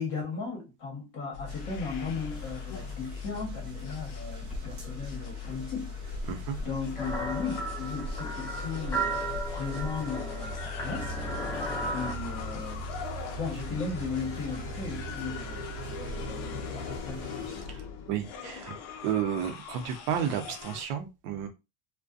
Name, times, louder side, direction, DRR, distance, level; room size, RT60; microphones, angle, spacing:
voice 1, 0.0-5.9 6.6-11.2 11.9-12.8 13.4-17.6, left 4 dB, 40° left, 1.1 m, -36 dB
sound 1, 1.3-20.8, left 5 dB, 60° left, 0.6 m, -39 dB
sound 2, 1.5-17.7, right 5 dB, 30° right, 1.1 m, -45 dB
sound 3, 7.0-12.1, right 2 dB, 10° left, 0.6 m, -35 dB
voice 2, 18.1-18.8 19.0-21.5, right 9 dB, 70° right, 0.6 m, -32 dB
2.5 x 2.2 x 2.4 m
cardioid pair, 155°, 30 cm